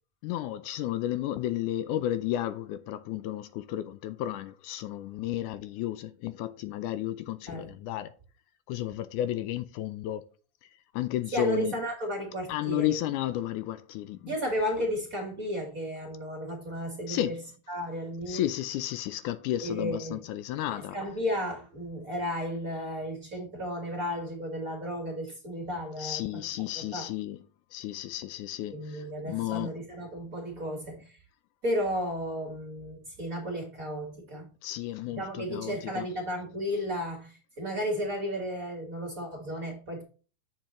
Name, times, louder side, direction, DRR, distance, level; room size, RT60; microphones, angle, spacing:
voice 1, 0.2-8.1 8.7-10.3 10.9-11.8 12.5-14.3 17.1-17.4 18.3-21.0 26.0-27.4 27.7-29.8 34.6-36.1, left 13 dB, 80° left, 2.0 m, -32 dB
voice 2, 11.3-13.0 14.3-17.3 17.7-18.4 19.6-20.2 20.7-26.4 26.7-27.1 28.7-31.2 31.6-34.5 35.1-40.0, equal, 35° right, 1.7 m, -33 dB
8.3 x 6.2 x 3.0 m
omnidirectional pair, 3.7 m